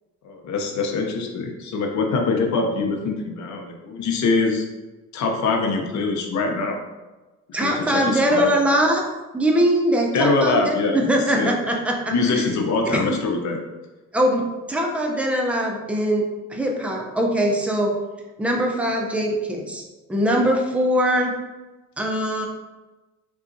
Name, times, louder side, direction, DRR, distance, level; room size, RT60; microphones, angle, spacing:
voice 1, 0.2-4.7 5.1-6.8 7.5-8.5 10.1-11.0 11.3-11.5 12.1-13.6, left 3 dB, 70° left, 3 dB, 0.6 m, -23 dB
voice 2, 7.5-9.0 9.3-12.5 12.9-13.2 14.1-16.2 16.5-17.9 18.4-19.8 20.1-21.3 22.0-22.5, equal, 5° right, 1 dB, 0.5 m, -22 dB
3.7 x 2.3 x 2.6 m, 1.2 s
cardioid pair, 90°, 30 cm